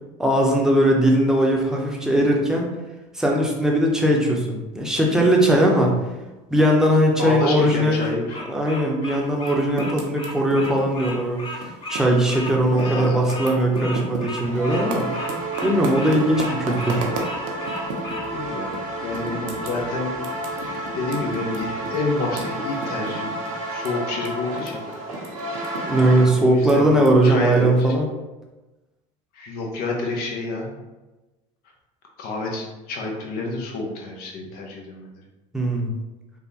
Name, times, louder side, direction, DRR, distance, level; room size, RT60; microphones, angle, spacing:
voice 1, 0.2-2.7 3.1-5.9 6.5-8.0 8.5-15.1 15.6-17.1 25.7-28.1 35.5-35.9, right 1 dB, 5° right, -1 dB, 0.7 m, -19 dB
voice 2, 7.2-8.4 11.9-12.0 12.7-13.4 18.3-18.7 19.0-20.2 20.6-23.3 23.7-24.8 25.4-25.6 26.4-27.9 29.3-30.8 32.2-35.1, left 3 dB, 60° left, 0 dB, 0.8 m, -29 dB
Bird vocalization bird call bird song, 7.4-18.3, left 1 dB, 30° left, 1.0 m, -35 dB
Typing, 9.4-12.2 12.4-18.3 18.7-18.8 19.1-24.3 24.5-27.1, right 3 dB, 70° right, 0.6 m, -34 dB
sound 1, 14.4-26.3, right 1 dB, 90° right, 1.1 m, -31 dB
3.4 x 2.2 x 2.8 m, 1.1 s
hypercardioid pair, 75°, 18 cm